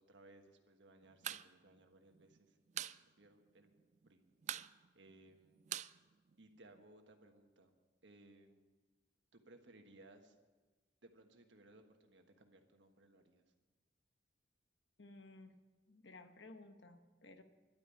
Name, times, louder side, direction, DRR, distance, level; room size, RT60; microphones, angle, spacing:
voice 1, 0.0-3.7 4.0-4.2 4.9-5.6 6.4-7.7 8.0-8.6 9.3-10.4 11.0-13.4, right 2 dB, 75° right, 5 dB, 1.4 m, -63 dB
sound 1, 1.1-1.5 1.7-1.8 2.1-3.0 3.3-3.4 3.7-4.1 4.4-6.8, right 11 dB, 40° right, 0.3 m, -44 dB
voice 2, 15.0-15.6 15.9-17.4, left 2 dB, 70° left, 8 dB, 1.1 m, -56 dB
11.5 x 9.1 x 8.5 m, 1.3 s
head